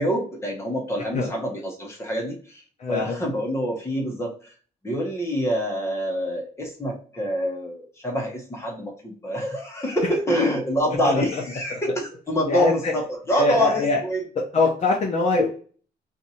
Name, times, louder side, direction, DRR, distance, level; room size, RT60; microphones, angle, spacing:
voice 1, 0.0-2.6 2.9-4.5 4.8-14.2 15.3-15.5, equal, 15° left, -1 dB, 1.0 m, -26 dB
voice 2, 2.8-3.2 11.0-11.4 11.7-11.8 12.5-12.9 13.3-14.0 14.5-15.5, left 3 dB, 40° left, -2 dB, 0.7 m, -23 dB
2.7 x 2.6 x 4.2 m, 0.41 s
cardioid pair, 135°, 17 cm